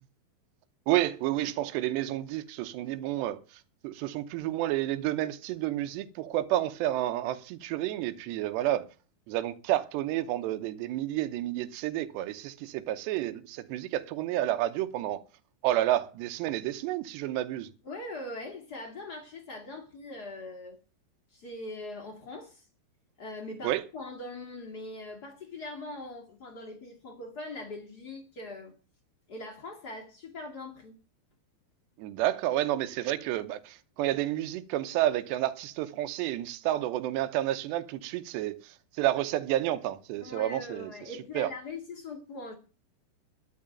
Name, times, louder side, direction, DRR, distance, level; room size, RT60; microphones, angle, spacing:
voice 1, 0.9-3.4 3.8-8.9 9.3-15.2 15.6-17.7 23.6-23.8 32.0-40.9 41.3-41.5, right 14 dB, 80° right, 3.0 m, -30 dB
voice 2, 17.8-20.8 21.3-22.6 23.2-28.7 29.3-31.0 40.2-42.5, left 2 dB, 35° left, 1.6 m, -41 dB
12.5 x 6.6 x 8.9 m
omnidirectional pair, 4.9 m